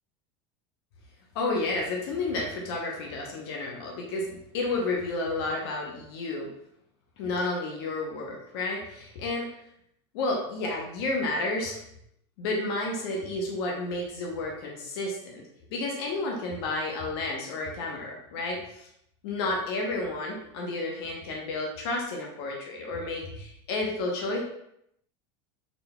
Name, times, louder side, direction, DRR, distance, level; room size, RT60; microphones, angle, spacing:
voice 1, 1.3-6.5 7.2-9.5 10.1-11.8 12.4-15.4 15.7-18.9 19.2-24.4, left 2 dB, 70° left, -1 dB, 0.8 m, -31 dB
3.9 x 3.8 x 2.2 m, 0.75 s
supercardioid pair, 155°, 14 cm